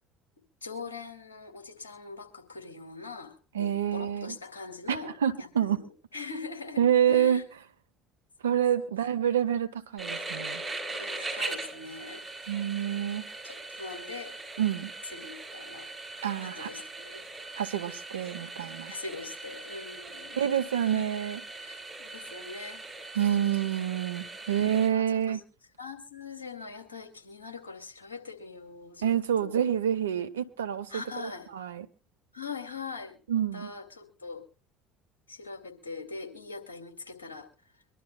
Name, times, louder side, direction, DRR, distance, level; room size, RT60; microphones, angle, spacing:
voice 1, 0.6-6.8 7.1-7.4 10.9-12.2 13.4-14.4 15.1-15.9 16.4-17.3 18.9-20.4 20.8-21.0 21.6-22.8 24.9-25.4 25.8-29.1 29.4-29.6 30.9-31.5 32.3-33.2 33.5-34.4 35.3-37.5, left 4 dB, 90° left, 3 dB, 2.3 m, -42 dB
voice 2, 3.5-4.4 4.9-5.8 6.8-7.4 8.4-10.6 12.5-13.3 14.6-14.9 16.2-16.7 17.6-18.9 20.4-21.4 23.1-25.4 29.0-31.9 33.3-33.7, right 9 dB, 85° right, 12 dB, 1.0 m, -27 dB
sound 1, 10.0-24.9, right 3 dB, 10° right, 7.1 m, -40 dB
24.5 x 12.0 x 2.2 m, 0.33 s
hypercardioid pair, 65°, 0 cm